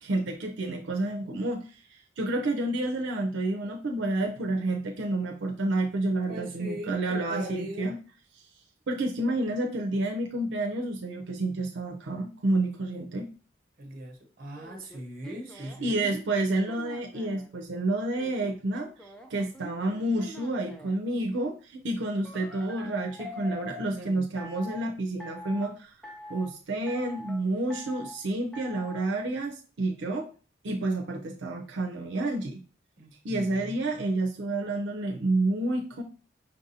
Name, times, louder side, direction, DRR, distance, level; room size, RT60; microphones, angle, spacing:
voice 1, 0.0-8.0 8.9-13.3 15.8-25.9 26.3-30.3 30.6-32.6 33.2-36.0, right 2 dB, 85° right, 1 dB, 0.5 m, -29 dB
voice 2, 6.3-7.9 13.8-16.2 24.0-24.3 33.0-33.8, equal, 50° right, 3 dB, 0.9 m, -40 dB
sound 1, 14.5-17.5 18.0-21.0 22.2-23.9 24.4-24.8 25.2-25.7 26.0-26.5 26.9-27.4 27.7-28.2 28.5-29.1, left 1 dB, 5° left, 0.4 m, -45 dB
5.5 x 2.6 x 2.7 m, 0.38 s
head